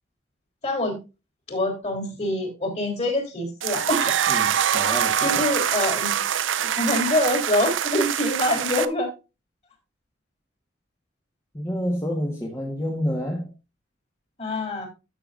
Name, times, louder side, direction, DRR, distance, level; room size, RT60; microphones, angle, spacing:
voice 1, 0.6-1.0 1.5-4.2 5.2-6.2 6.6-9.1 14.4-14.9, left 1 dB, 35° left, 3.4 m, -25 dB
sound 1, 3.6-8.9, right 9 dB, 80° right, 0.6 m, -24 dB
voice 2, 4.3-5.4 11.5-13.5, equal, 15° left, 1.5 m, -29 dB
12.5 x 6.7 x 2.6 m
head